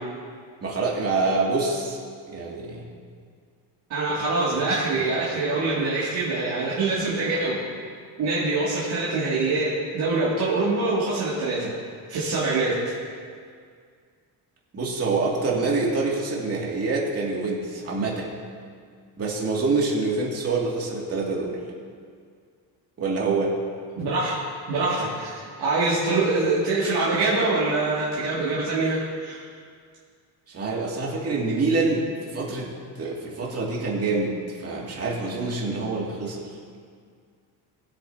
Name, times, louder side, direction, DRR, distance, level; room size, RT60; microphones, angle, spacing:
voice 1, 0.6-2.0 2.3-2.9 14.7-18.3 19.2-21.6 23.0-23.5 30.5-36.5, right 3 dB, 35° right, -4 dB, 2.5 m, -26 dB
voice 2, 3.9-7.6 8.2-11.7 12.1-12.8 24.0-24.4 24.7-29.4, right 3 dB, 65° right, -9 dB, 2.5 m, -24 dB
20.5 x 8.7 x 2.9 m, 2.1 s
cardioid pair, 140°, 41 cm